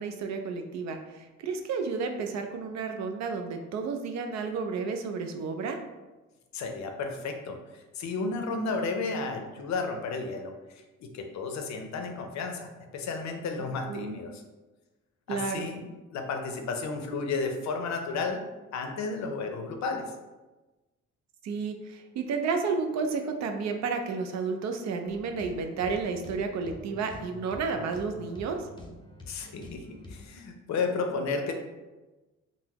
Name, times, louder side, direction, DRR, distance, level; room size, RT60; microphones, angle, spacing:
voice 1, 0.0-5.8 13.9-14.2 15.3-15.7 21.4-28.7, right 5 dB, 65° right, 5 dB, 0.5 m, -31 dB
voice 2, 6.5-7.6 7.9-14.4 15.3-15.8 16.1-18.4 18.7-20.1 29.3-31.5, left 4 dB, 65° left, 4 dB, 0.5 m, -33 dB
sound 1, 25.0-30.3, left 2 dB, 15° left, 0.5 m, -46 dB
3.7 x 2.0 x 2.9 m, 1.1 s
cardioid pair, 90°, 30 cm